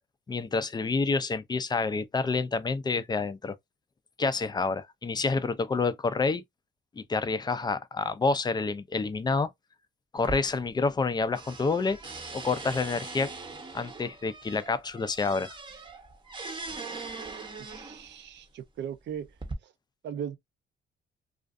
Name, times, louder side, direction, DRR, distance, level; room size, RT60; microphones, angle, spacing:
voice 1, 0.3-3.5 4.2-6.4 7.0-9.5 10.1-12.0 12.3-13.3 13.7-15.6, left 4 dB, 20° left, 0.4 m, -28 dB
sound 1, 10.2-11.1 11.4-18.2 18.9-19.5, right 3 dB, 25° right, 0.8 m, -41 dB
voice 2, 17.6-19.3 19.6-19.7 20.0-20.4, right 8 dB, 65° right, 0.5 m, -38 dB
2.4 x 2.4 x 2.4 m
cardioid pair, 90°, 20 cm